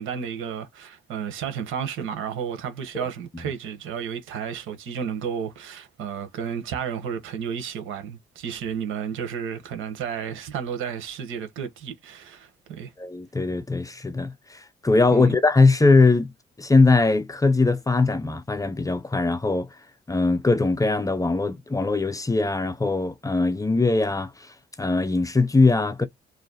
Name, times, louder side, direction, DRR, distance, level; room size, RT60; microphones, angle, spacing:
voice 1, 0.0-12.9 15.1-15.4, right 7 dB, 90° right, 1.3 m, -32 dB
voice 2, 13.0-16.3 16.6-19.7 20.1-24.5 24.8-26.1, left 3 dB, 15° left, 0.7 m, -21 dB
3.2 x 2.7 x 4.0 m
cardioid pair, 90°, 20 cm